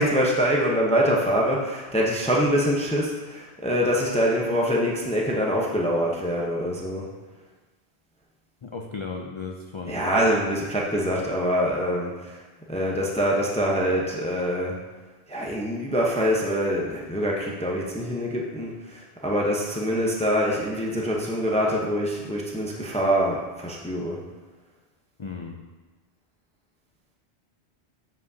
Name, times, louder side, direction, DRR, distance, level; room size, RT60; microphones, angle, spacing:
voice 1, 0.0-7.1 9.9-12.4 12.7-14.8 15.3-24.2, equal, 5° left, -2 dB, 0.7 m, -24 dB
voice 2, 8.6-10.0 25.2-25.7, left 4 dB, 45° left, 2 dB, 0.3 m, -35 dB
7.7 x 7.5 x 2.8 m, 1.3 s
omnidirectional pair, 1.1 m